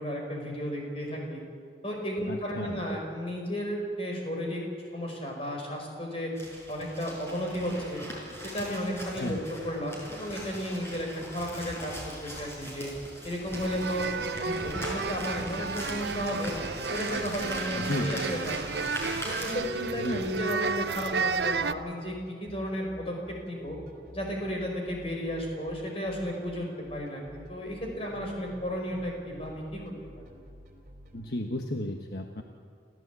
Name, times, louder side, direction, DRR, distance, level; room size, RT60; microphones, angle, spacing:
voice 1, 0.0-1.4 1.8-4.6 4.9-6.3 6.7-8.0 8.4-9.4 9.6-11.9 12.2-12.9 13.2-14.0 14.4-16.5 16.9-18.9 19.2-23.8 24.1-27.2 27.5-30.2, equal, 30° left, 0 dB, 5.1 m, -33 dB
voice 2, 2.3-2.8 9.2-9.4 17.8-18.1 19.9-20.3 31.1-32.4, left 1 dB, 60° left, 3 dB, 1.3 m, -33 dB
sound 1, 6.4-19.5, equal, 15° left, 5.6 m, -41 dB
sound 2, 13.5-21.7, right 4 dB, 65° right, 0.7 m, -32 dB
sound 3, 21.7-31.3, equal, 50° right, 3.3 m, -50 dB
27.5 x 14.5 x 8.3 m, 2.2 s
head